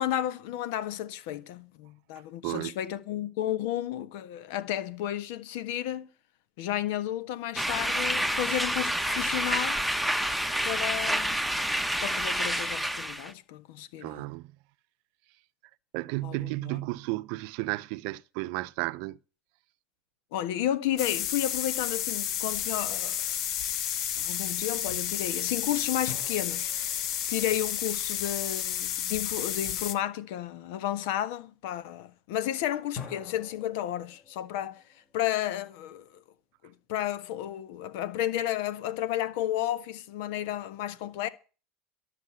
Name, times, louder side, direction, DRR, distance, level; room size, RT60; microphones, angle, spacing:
voice 1, 0.0-6.1 6.6-9.8 10.6-11.4 12.0-14.3 16.2-16.8 20.3-23.4 24.2-26.9 27.3-34.8 35.1-36.2 36.6-41.3, left 12 dB, 75° left, 1.5 m, -32 dB
voice 2, 2.4-2.8 14.0-14.5 15.9-19.2, right 21 dB, 70° right, 0.6 m, -33 dB
sound 1, 7.6-13.3, equal, ahead, 1.0 m, -28 dB
sound 2, 21.0-30.0, left 10 dB, 55° left, 1.4 m, -31 dB
sound 3, 26.1-28.9 32.9-36.2, left 6 dB, 40° left, 4.4 m, -48 dB
13.0 x 6.6 x 9.7 m
supercardioid pair, 115°, 0 cm